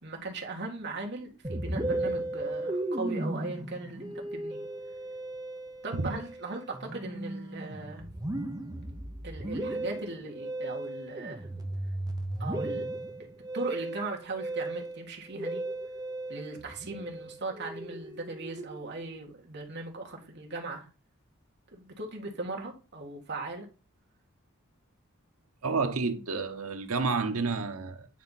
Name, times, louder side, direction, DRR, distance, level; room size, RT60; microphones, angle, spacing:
voice 1, 0.0-4.6 5.8-8.1 9.2-11.5 12.4-12.9 13.5-15.6 16.3-20.9 21.7-23.6, right 2 dB, 55° right, 1.8 m, -38 dB
Musical instrument, 1.4-19.0, right 1 dB, 20° right, 0.9 m, -36 dB
voice 2, 25.6-28.1, right 4 dB, 85° right, 1.0 m, -30 dB
9.3 x 4.3 x 4.1 m
head